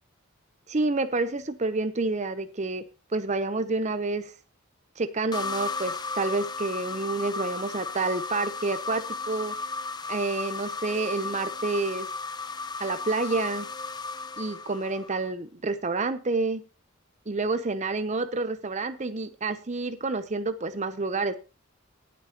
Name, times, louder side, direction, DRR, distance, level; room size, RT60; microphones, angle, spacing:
voice 1, 0.7-2.8 3.1-4.3 5.0-9.5 10.1-12.1 12.8-13.7 14.4-16.6 17.3-21.4, right 3 dB, 35° right, 10 dB, 0.7 m, -29 dB
sound 1, 5.3-15.3, left 4 dB, 20° left, 0.6 m, -35 dB
18.0 x 8.6 x 2.9 m, 0.31 s
head